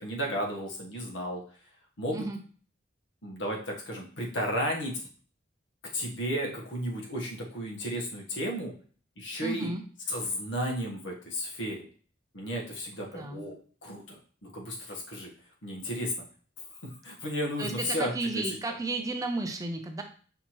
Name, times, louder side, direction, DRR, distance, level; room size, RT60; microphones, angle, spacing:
voice 1, 0.0-1.4 2.0-2.3 3.2-5.0 5.9-8.7 9.2-9.7 10.1-11.9 12.3-15.3 15.6-16.1 17.0-18.8, equal, 75° left, -1 dB, 1.2 m, -33 dB
voice 2, 9.4-9.8 13.1-13.4 17.6-20.0, right 2 dB, 20° right, 4 dB, 0.5 m, -33 dB
5.7 x 2.8 x 3.0 m, 0.43 s
head